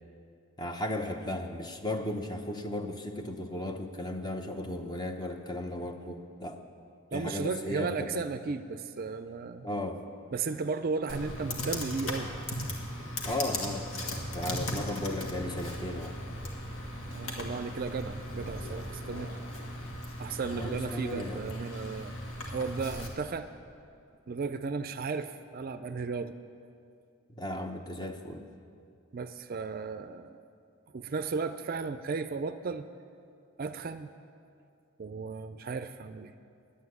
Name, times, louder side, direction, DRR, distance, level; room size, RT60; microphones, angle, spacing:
voice 1, 0.6-6.6 7.1-8.2 9.6-10.0 13.2-13.9 14.3-16.2 20.5-21.4 27.3-28.5, left 1 dB, 20° left, 5 dB, 0.7 m, -35 dB
voice 2, 7.1-9.7 10.3-12.3 17.1-19.4 20.2-22.2 22.4-23.5 24.3-26.3 29.1-30.4 30.9-32.9 33.6-34.1 35.0-36.3, right 4 dB, 40° right, 10 dB, 0.4 m, -35 dB
Computer keyboard, 11.1-23.1, left 1 dB, 75° left, 1.9 m, -37 dB
11.5 x 8.5 x 9.6 m, 2.4 s
head